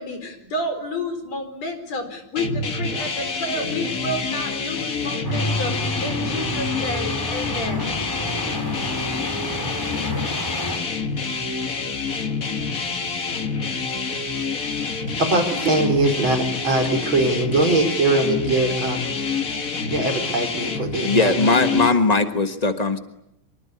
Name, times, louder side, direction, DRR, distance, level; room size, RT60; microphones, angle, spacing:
voice 1, 0.0-7.8, left 1 dB, 60° left, 8 dB, 5.5 m, -30 dB
sound 1, 2.4-21.9, left 4 dB, 35° left, 1.7 m, -27 dB
sound 2, 5.2-10.8, equal, 5° left, 3.7 m, -29 dB
voice 2, 15.2-19.2 19.9-21.8, right 2 dB, 40° right, 5 dB, 5.5 m, -22 dB
voice 3, 21.0-23.0, left 3 dB, 75° left, 8 dB, 0.3 m, -19 dB
25.0 x 24.0 x 9.7 m, 0.83 s
omnidirectional pair, 3.4 m